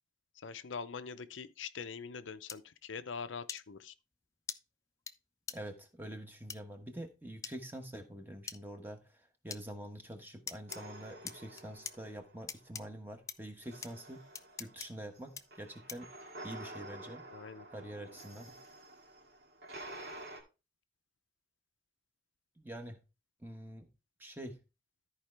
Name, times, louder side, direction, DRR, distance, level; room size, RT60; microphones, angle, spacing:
voice 1, 0.4-3.9 17.3-17.7, left 5 dB, 90° left, 0.6 m, -43 dB
sound 1, 2.5-2.6 3.5-3.6 4.5-4.6 5.1-5.2 5.5-5.6 6.5-6.6 7.4-7.5 8.5-8.6 9.5-9.6 10.5-10.8 11.3-11.9 12.5-12.8 13.3-13.4 13.8-13.9 14.3-14.9 15.4-15.5 15.9-16.1, left 6 dB, 15° left, 0.3 m, -42 dB
voice 2, 5.5-14.2 14.6-16.1 16.4-17.2 17.7-18.6 22.6-23.0 23.4-23.9 24.2-24.6, right 1 dB, 10° right, 1.1 m, -46 dB
sound 2, 10.7-12.7 13.6-20.4, right 1 dB, 65° right, 2.2 m, -50 dB
13.5 x 4.8 x 3.3 m
head